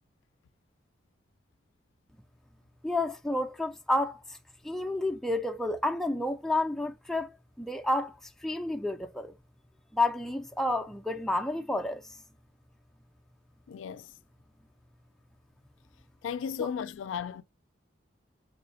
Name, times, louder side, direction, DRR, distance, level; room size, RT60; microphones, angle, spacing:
voice 1, 2.8-4.4 4.6-9.3 9.9-12.2, left 1 dB, ahead, 0.3 m, -30 dB
voice 2, 13.7-14.1 16.2-17.4, left 7 dB, 85° left, 0.3 m, -35 dB
4.0 x 3.1 x 2.5 m
head